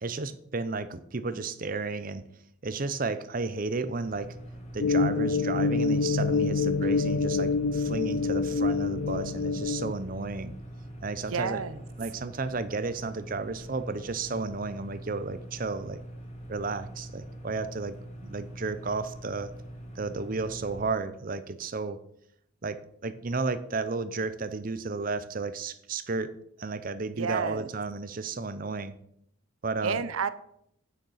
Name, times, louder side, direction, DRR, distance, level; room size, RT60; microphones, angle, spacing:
voice 1, 0.0-2.2 2.6-4.4 4.7-10.5 11.0-11.6 12.0-16.0 16.5-19.5 20.0-22.0 22.6-26.3 26.6-28.9 29.6-30.0, right 3 dB, 40° right, 13 dB, 0.6 m, -33 dB
sound 1, 4.0-20.8, right 1 dB, 30° left, 1.9 m, -43 dB
sound 2, 4.8-9.9, left 4 dB, 60° left, 0.4 m, -26 dB
voice 2, 11.3-11.8 27.2-27.7 29.8-30.3, right 5 dB, 85° right, 14 dB, 0.7 m, -30 dB
9.2 x 6.5 x 5.7 m, 0.71 s
head